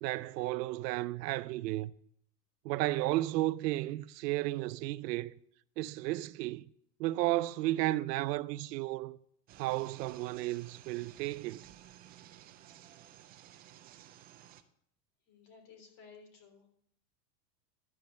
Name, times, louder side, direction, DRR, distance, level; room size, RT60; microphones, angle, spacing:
voice 1, 0.0-1.9 2.6-5.3 5.8-6.6 7.0-9.2 9.6-11.6, right 17 dB, 80° right, 0.6 m, -33 dB
sound 1, 9.5-14.6, right 12 dB, 20° right, 0.3 m, -55 dB
voice 2, 15.3-16.7, left 5 dB, 40° left, 3.5 m, -56 dB
12.0 x 5.4 x 7.5 m
supercardioid pair, 130°, 48 cm